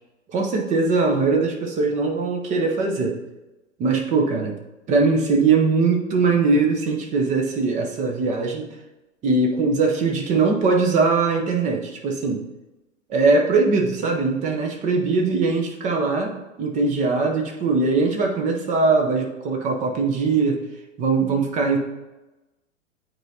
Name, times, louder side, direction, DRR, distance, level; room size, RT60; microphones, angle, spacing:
voice 1, 0.3-3.2 3.8-4.6 4.9-8.7 9.2-12.4 13.1-20.6 21.0-21.8, right 4 dB, 20° right, 2 dB, 0.7 m, -21 dB
8.9 x 4.1 x 2.8 m, 1.0 s
figure-of-eight pair, 105°, 39 cm